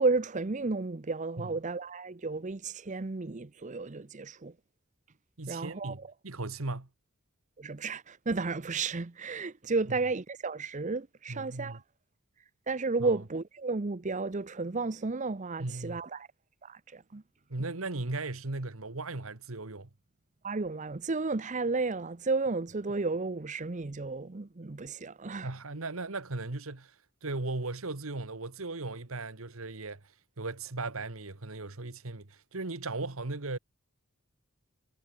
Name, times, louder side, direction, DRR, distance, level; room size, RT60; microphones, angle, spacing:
voice 1, 0.0-4.5 5.5-6.1 7.6-11.8 12.7-16.3 16.6-17.2 20.4-25.5, right 3 dB, 35° right, 0.7 m, -33 dB
voice 2, 5.4-6.9 11.3-11.8 13.0-13.1 15.6-16.0 17.5-19.9 25.4-26.9 27.2-30.0 30.4-33.6, right 2 dB, 75° right, 1.7 m, -37 dB
head